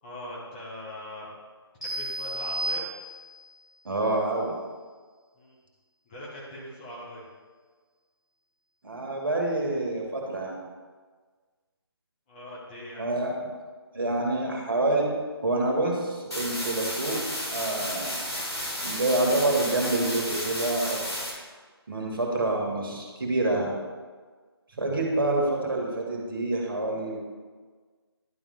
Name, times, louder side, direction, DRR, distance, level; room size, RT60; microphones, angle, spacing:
voice 1, 0.0-1.3 1.8-2.8 5.3-5.6 6.0-7.3 12.3-13.1, left 1 dB, 20° left, -6 dB, 1.6 m, -41 dB
sound 1, 1.8-3.5, right 1 dB, ahead, 0.9 m, -33 dB
voice 2, 3.8-4.5 8.8-10.6 13.0-13.3 13.9-15.0 15.4-17.2 17.5-18.3 18.8-21.0 21.9-23.8 24.7-27.2, right 2 dB, 55° right, -1 dB, 2.2 m, -27 dB
sound 2, 16.3-21.3, equal, 80° left, 2.2 m, -32 dB
11.0 x 3.7 x 5.1 m, 1.5 s
figure-of-eight pair, 155°, 13 cm